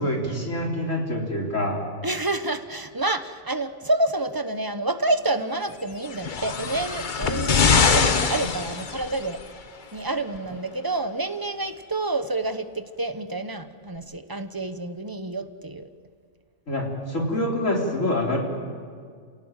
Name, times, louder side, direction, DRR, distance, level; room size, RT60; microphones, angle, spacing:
voice 1, 0.0-1.8 16.7-18.4, left 1 dB, 70° left, 0 dB, 4.0 m, -26 dB
voice 2, 2.0-7.6 7.9-9.4 9.9-15.9, right 2 dB, 20° right, 9 dB, 0.9 m, -28 dB
sound 1, 6.0-9.4 10.4-10.5, left 5 dB, 40° left, 1.0 m, -23 dB
27.0 x 17.5 x 9.1 m, 2.1 s
omnidirectional pair, 1.4 m